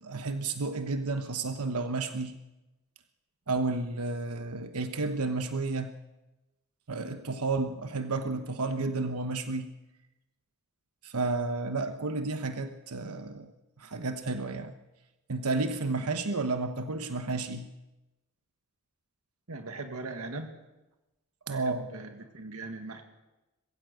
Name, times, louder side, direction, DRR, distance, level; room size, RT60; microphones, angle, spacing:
voice 1, 0.0-2.4 3.5-6.0 6.9-9.7 11.0-13.5 13.8-14.7 15.3-17.7 21.5-21.9, right 3 dB, 90° right, 8 dB, 1.1 m, -31 dB
voice 2, 19.5-20.5 21.5-23.0, right 3 dB, 70° right, 6 dB, 1.8 m, -40 dB
21.5 x 15.5 x 8.0 m, 1.0 s
head